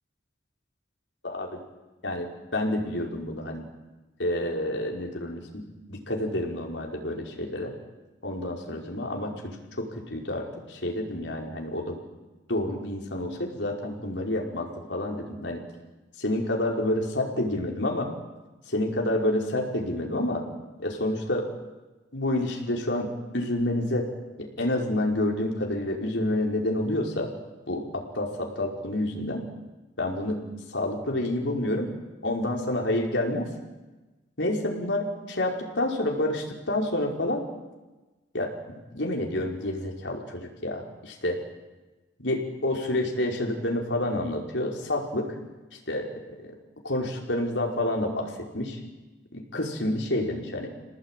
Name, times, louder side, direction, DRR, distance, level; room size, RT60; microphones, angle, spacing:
voice 1, 1.2-1.6 2.0-3.7 4.2-5.6 5.9-7.7 8.2-12.0 12.5-15.6 16.2-18.1 18.7-20.4 20.8-21.5 22.1-24.1 24.4-27.3 27.7-29.4 30.0-30.4 30.7-31.9 32.2-33.5 34.4-37.4 38.3-41.4 42.2-45.3 45.9-46.1 46.4-46.5 46.8-48.8 49.3-50.7, left 1 dB, 85° left, 0 dB, 5.2 m, -29 dB
28.5 x 19.0 x 9.2 m, 1.2 s
head